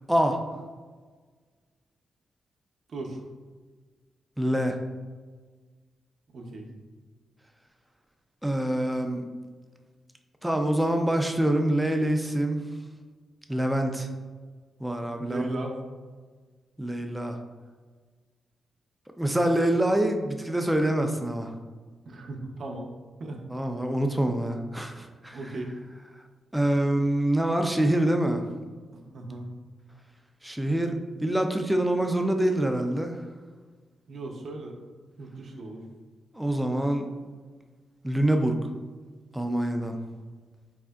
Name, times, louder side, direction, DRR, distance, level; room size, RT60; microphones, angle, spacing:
voice 1, 0.1-0.4 4.4-4.8 8.4-9.2 10.4-12.7 13.5-14.1 14.8-15.5 16.8-17.4 19.2-21.5 23.5-25.4 26.5-28.4 30.4-30.9 31.2-33.2 36.3-37.1 38.0-38.6 39.3-40.0, right 1 dB, 5° right, 4 dB, 0.4 m, -25 dB
voice 2, 2.9-3.2 6.3-6.7 15.2-15.8 22.1-22.9 23.2-23.4 25.3-25.7 28.9-29.5 34.1-34.8 35.2-35.9, right 2 dB, 65° right, 2 dB, 0.6 m, -37 dB
4.1 x 3.6 x 2.3 m, 1.4 s
cardioid pair, 80°, 0 cm